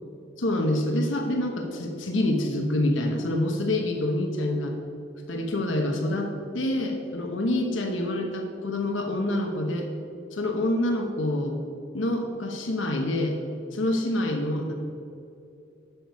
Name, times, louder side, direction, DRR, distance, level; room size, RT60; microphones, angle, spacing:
voice 1, 0.4-4.7 5.3-9.9 10.3-11.6 11.9-13.4 13.7-14.7, left 1 dB, 75° left, 3 dB, 1.0 m, -26 dB
11.0 x 6.8 x 4.7 m, 2.7 s
head